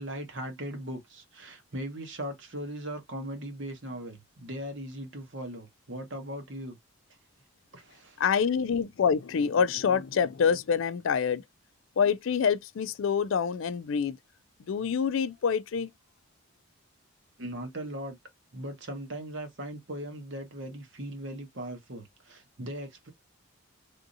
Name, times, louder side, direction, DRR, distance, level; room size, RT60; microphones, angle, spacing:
voice 1, 0.0-6.8 7.7-8.2 17.4-18.2 18.5-23.1, right 1 dB, 55° right, 1.2 m, -39 dB
voice 2, 8.2-11.4 12.0-14.2 14.7-15.9, left 6 dB, 60° left, 0.3 m, -26 dB
3.5 x 2.7 x 2.5 m
head